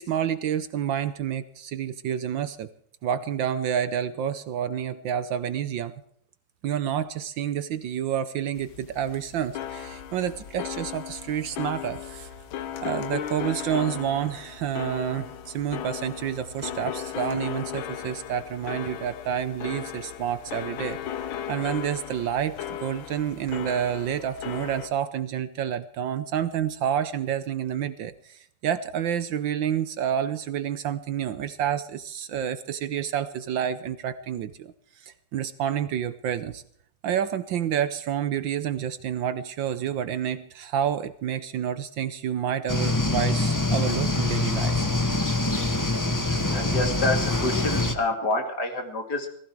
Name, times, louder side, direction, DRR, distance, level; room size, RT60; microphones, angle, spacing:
voice 1, 0.0-2.7 3.0-5.9 6.6-12.3 12.8-21.0 21.5-36.6 37.0-44.8, right 9 dB, 70° right, 14 dB, 1.4 m, -29 dB
sound 1, 8.5-24.9, left 10 dB, 70° left, 1.7 m, -36 dB
sound 2, 42.7-47.9, left 2 dB, 10° left, 1.0 m, -24 dB
voice 2, 46.5-49.3, left 2 dB, 50° left, 4 dB, 3.1 m, -27 dB
18.5 x 15.0 x 4.7 m, 0.65 s
omnidirectional pair, 2.4 m